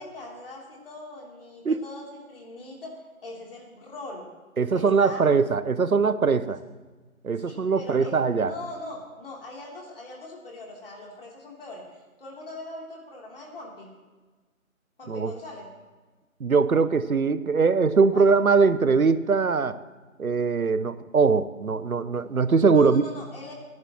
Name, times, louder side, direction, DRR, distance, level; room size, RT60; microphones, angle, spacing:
voice 1, 0.0-4.3 4.7-5.3 6.4-6.5 7.4-13.9 15.0-15.7 18.1-18.3 22.7-23.5, left 2 dB, 40° left, -2 dB, 3.3 m, -41 dB
voice 2, 4.6-6.6 7.2-8.5 15.1-15.3 16.4-19.8 20.2-23.0, right 5 dB, 85° right, 14 dB, 0.9 m, -21 dB
27.5 x 11.0 x 3.0 m, 1.3 s
figure-of-eight pair, 155°, 42 cm